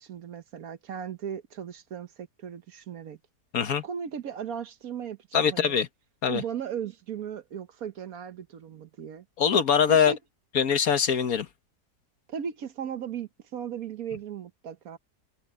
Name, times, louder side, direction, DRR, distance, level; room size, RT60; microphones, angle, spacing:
voice 1, 0.0-3.2 3.8-5.8 6.3-9.2 9.9-10.2 12.3-15.0, right 8 dB, 65° right, 1.3 m, -37 dB
voice 2, 5.3-5.9 6.2-6.4 9.4-10.1 10.5-11.5, left 7 dB, 60° left, 1.5 m, -23 dB
omnidirectional pair, 1.8 m